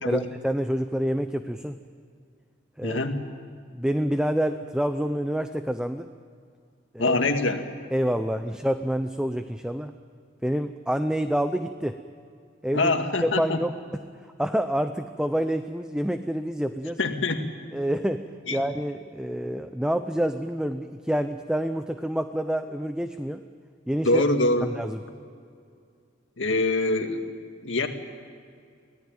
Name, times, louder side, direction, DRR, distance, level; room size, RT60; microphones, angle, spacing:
voice 1, 0.0-1.8 2.8-3.0 3.7-6.1 6.9-7.2 7.9-9.9 10.4-12.0 12.6-12.9 13.2-13.7 14.4-17.0 17.7-23.4 23.9-24.2 24.6-25.0, equal, 5° right, 8 dB, 0.6 m, -27 dB
voice 2, 2.8-3.2 7.0-7.7 12.7-13.6 17.0-17.5 18.5-18.6 24.0-24.7 26.4-27.2 27.6-27.9, left 2 dB, 85° left, 5 dB, 2.1 m, -24 dB
25.5 x 17.5 x 9.2 m, 2.3 s
head